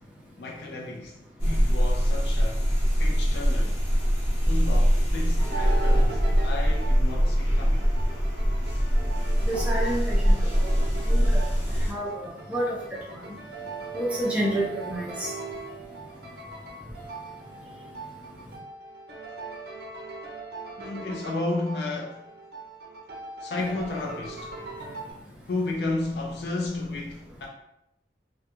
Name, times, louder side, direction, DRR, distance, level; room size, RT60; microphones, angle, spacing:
voice 1, 0.4-1.1 1.5-2.7 3.0-3.8 4.4-7.8 20.8-22.2 23.4-24.5 25.5-27.5, left 2 dB, 65° left, 0.4 m, -32 dB
sound 1, 1.4-11.9, equal, 30° left, 0.8 m, -23 dB
sound 2, 5.4-25.1, right 3 dB, 60° right, 0.5 m, -40 dB
voice 2, 9.5-10.7 11.0-11.4 11.9-12.8 13.9-15.3, right 1 dB, 5° right, 0.5 m, -29 dB
2.3 x 2.1 x 2.9 m
head